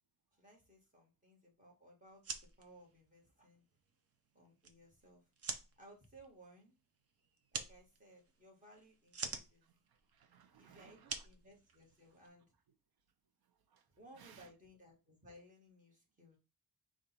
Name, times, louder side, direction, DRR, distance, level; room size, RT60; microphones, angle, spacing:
voice 1, 0.3-2.2 2.6-3.6 4.3-5.2 5.8-6.7 7.5-9.6 10.5-12.4 14.0-16.4, right 1 dB, 20° right, 1.7 m, -61 dB
sound 1, 2.1-12.3, right 5 dB, 40° right, 0.6 m, -48 dB
voice 2, 9.6-11.3 13.5-13.9 14.2-14.5, right 7 dB, 85° right, 0.8 m, -63 dB
5.1 x 2.4 x 4.3 m
wide cardioid pair, 160°, 36 cm